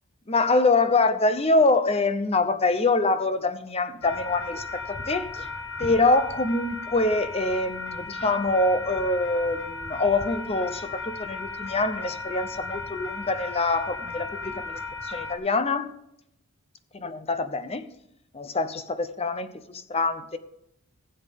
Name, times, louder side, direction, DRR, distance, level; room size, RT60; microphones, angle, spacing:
voice 1, 0.3-5.5 5.8-15.9 17.0-17.9 18.3-20.4, left 3 dB, 25° left, 0.7 m, -25 dB
sound 1, 4.0-15.4, left 3 dB, 60° left, 1.2 m, -35 dB
16.0 x 8.0 x 3.7 m
head